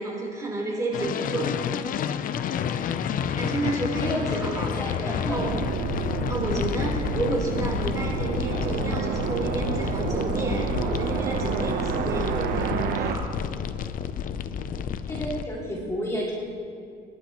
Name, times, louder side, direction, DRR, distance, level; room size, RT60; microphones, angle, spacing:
voice 1, 0.0-1.5 3.3-5.6 6.3-13.3, right 2 dB, 20° right, -2 dB, 4.0 m, -31 dB
sound 1, 0.9-15.4, left 8 dB, 55° left, 0.6 m, -30 dB
voice 2, 4.0-5.5 15.1-16.3, equal, 15° left, -4 dB, 2.6 m, -31 dB
sound 2, 5.3-13.2, right 6 dB, 70° right, 1.0 m, -29 dB
23.5 x 11.5 x 3.1 m, 2.4 s
cardioid pair, 110°, 17 cm